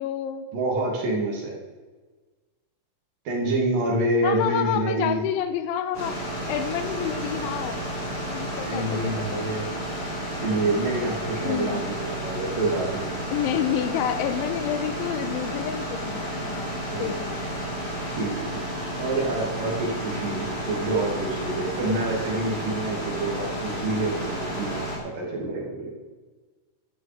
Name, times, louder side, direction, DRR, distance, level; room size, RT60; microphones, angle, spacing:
voice 1, 0.0-0.5 4.2-6.2 6.5-7.8 8.3-9.4 11.4-11.7 13.3-16.7 17.0-17.4, left 9 dB, 75° left, 10 dB, 3.2 m, -29 dB
voice 2, 0.5-1.5 3.3-5.2 8.7-9.7 10.4-13.0 16.9-17.1 18.1-18.6 19.0-25.9, right 2 dB, 50° right, -2 dB, 3.8 m, -27 dB
sound 1, 5.9-25.0, right 1 dB, 30° left, 4.2 m, -32 dB
12.0 x 12.0 x 5.1 m, 1.3 s
omnidirectional pair, 5.8 m